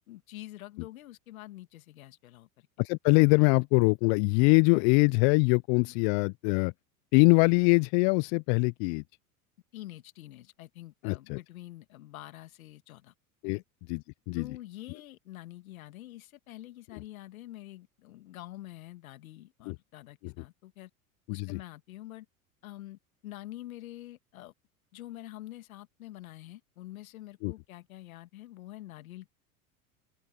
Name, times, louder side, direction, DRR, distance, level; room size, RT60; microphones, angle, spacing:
voice 1, 0.1-2.7 9.7-13.1 13.4-13.6 14.3-20.9 21.3-22.3 22.6-24.5 24.9-29.3, left 15 dB, 70° left, 2.1 m, -46 dB
voice 2, 2.8-6.7 7.1-9.0 11.0-11.4 13.4-13.6 13.9-14.5 19.7-19.8 20.2-20.3 21.3-21.6 27.4-27.5, left 36 dB, 50° left, 0.6 m, -23 dB
open air
hypercardioid pair, 80°, 43 cm